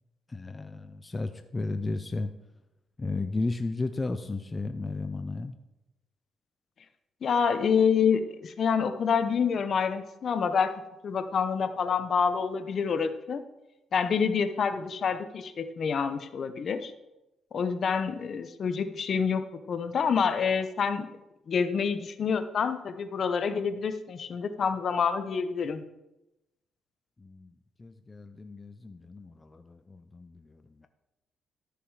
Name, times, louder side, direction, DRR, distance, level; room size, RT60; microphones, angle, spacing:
voice 1, 0.3-2.3 3.0-5.6 27.2-27.5 27.8-30.9, left 3 dB, 25° left, 9 dB, 0.6 m, -34 dB
voice 2, 7.2-10.7 11.0-13.4 13.9-16.9 17.5-21.1 21.5-25.8, left 6 dB, 55° left, 10 dB, 0.8 m, -27 dB
12.5 x 6.8 x 4.8 m, 0.96 s
cardioid pair, 90°, 0 cm